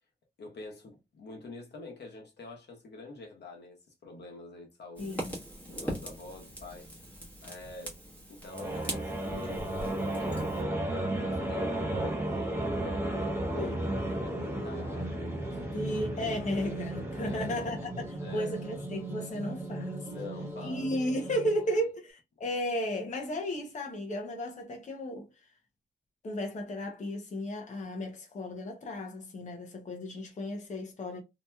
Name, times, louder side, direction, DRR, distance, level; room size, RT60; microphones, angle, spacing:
voice 1, 0.4-3.8 4.0-5.4 5.6-6.9 7.4-8.0 8.3-10.6 11.2-13.4 14.1-15.9 17.2-17.5 18.2-18.6 20.0-20.9 21.7-21.8, left 2 dB, 80° left, 1.0 m, -46 dB
voice 2, 5.0-5.4 13.6-13.9 15.7-20.1 20.6-25.3 26.2-31.2, equal, 45° left, 0.7 m, -34 dB
Fire, 5.0-10.6, right 1 dB, 10° left, 1.1 m, -41 dB
sound 1, 8.5-21.7, right 1 dB, 15° right, 0.7 m, -34 dB
2.9 x 2.7 x 2.2 m
wide cardioid pair, 135°, 17 cm